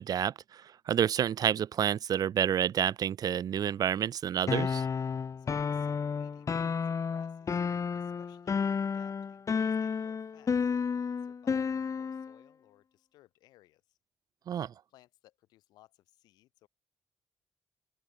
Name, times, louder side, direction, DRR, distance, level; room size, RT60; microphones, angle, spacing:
voice 1, 0.0-4.9 14.5-14.7, right 9 dB, 70° right, 1.0 m, -29 dB
sound 1, 4.5-12.3, left 6 dB, 50° left, 0.8 m, -31 dB
voice 2, 5.4-14.0 14.9-16.7, left 16 dB, 90° left, 7.4 m, -63 dB
open air
supercardioid pair, 40°, 7 cm